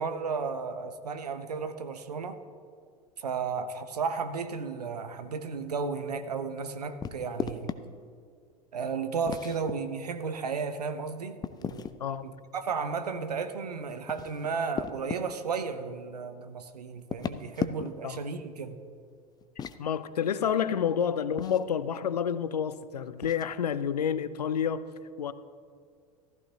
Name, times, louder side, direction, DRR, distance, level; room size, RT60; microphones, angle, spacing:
voice 1, 0.0-2.4 3.2-7.7 8.7-11.9 12.2-18.8, right 5 dB, 80° right, 9 dB, 0.8 m, -34 dB
sound 1, 7.0-7.8 9.3-9.7 11.4-12.0 13.9-15.2 17.0-18.1 19.4-19.8 21.4-21.6 23.2-23.5, left 7 dB, 20° left, 0.5 m, -36 dB
voice 2, 19.8-24.9 25.2-25.3, left 8 dB, 80° left, 15 dB, 0.5 m, -29 dB
15.0 x 14.0 x 2.9 m, 2.2 s
figure-of-eight pair, 80°, 20 cm